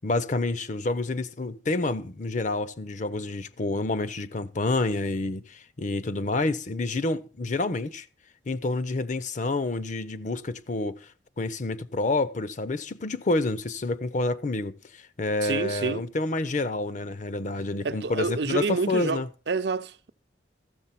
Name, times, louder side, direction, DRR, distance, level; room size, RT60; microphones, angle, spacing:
voice 1, 0.0-8.1 8.5-11.1 11.4-19.3, left 2 dB, 45° left, 0.6 m, -28 dB
voice 2, 15.4-16.0 17.8-20.1, right 4 dB, 65° right, 0.6 m, -28 dB
14.0 x 7.3 x 5.7 m
head